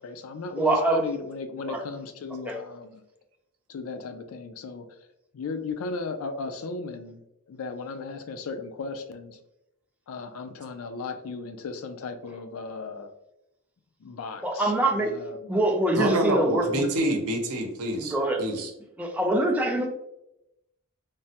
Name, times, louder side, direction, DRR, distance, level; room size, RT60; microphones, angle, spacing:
voice 1, 0.0-3.0 3.7-5.0 5.3-7.2 7.5-9.4 10.1-13.1 14.0-15.7 16.0-16.3, left 4 dB, 65° left, 8 dB, 0.4 m, -36 dB
voice 2, 0.6-1.0 1.7-1.8 2.4-2.6 14.4-16.8 18.0-18.4 19.0-19.9, right 1 dB, 5° right, 1 dB, 0.3 m, -24 dB
voice 3, 15.9-18.7, right 1 dB, 90° right, 3 dB, 0.6 m, -27 dB
3.3 x 2.1 x 2.7 m, 0.86 s
head